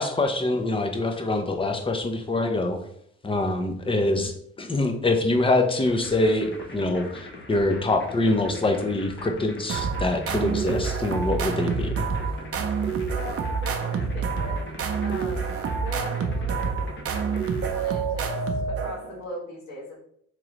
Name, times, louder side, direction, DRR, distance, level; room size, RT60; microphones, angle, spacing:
voice 1, 0.0-2.8 3.2-4.3 4.6-12.1, left 2 dB, 20° left, 5 dB, 0.6 m, -24 dB
sound 1, 5.9-17.7, left 2 dB, 40° left, 0.9 m, -42 dB
sound 2, 9.7-19.2, right 5 dB, 50° right, 0.6 m, -28 dB
voice 2, 13.1-14.6 15.0-16.8 17.7-18.3 18.7-20.0, left 2 dB, 75° left, -5 dB, 1.4 m, -39 dB
3.7 x 3.1 x 3.0 m, 0.68 s
cardioid pair, 90°, 30 cm